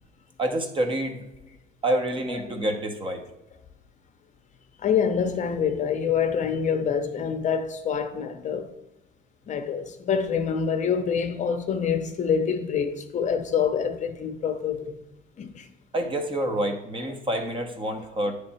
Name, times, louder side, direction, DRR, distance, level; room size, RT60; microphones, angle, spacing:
voice 1, 0.4-1.2 1.8-3.2 15.9-18.4, right 1 dB, 30° right, 1.0 m, -27 dB
voice 2, 4.8-8.7 9.5-15.0 15.4-15.7, left 7 dB, 45° left, 0.7 m, -26 dB
9.4 x 3.4 x 4.3 m
cardioid pair, 110°, 17 cm